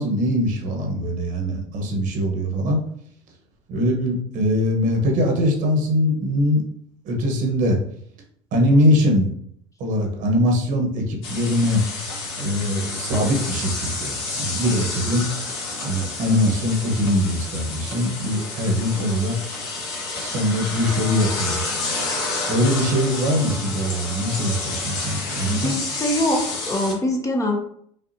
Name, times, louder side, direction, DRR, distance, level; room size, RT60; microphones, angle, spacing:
voice 1, 0.0-2.8 3.7-6.6 7.0-7.8 8.5-9.3 9.8-11.8 12.4-15.3 15.8-19.4 20.2-21.7 22.5-25.7, equal, 55° right, 1 dB, 1.2 m, -22 dB
sound 1, 11.2-26.9, left 3 dB, 75° left, 1.4 m, -29 dB
voice 2, 25.4-27.6, left 1 dB, 20° left, 2 dB, 0.7 m, -23 dB
5.3 x 2.5 x 2.8 m, 0.66 s
supercardioid pair, 100°, 16 cm